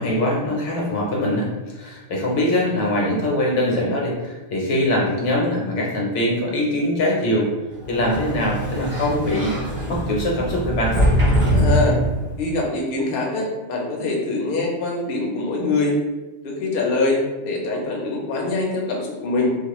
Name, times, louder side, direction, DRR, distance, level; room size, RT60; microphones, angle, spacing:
voice 1, 0.0-7.5 7.9-10.9, left 1 dB, 80° left, -2 dB, 1.0 m, -22 dB
Sliding door, 7.8-12.5, equal, 35° right, 0.6 m, -22 dB
voice 2, 11.5-12.0 12.4-16.0 16.4-19.5, left 2 dB, 60° left, -1 dB, 0.7 m, -24 dB
2.3 x 2.0 x 2.9 m, 1.1 s
omnidirectional pair, 1.2 m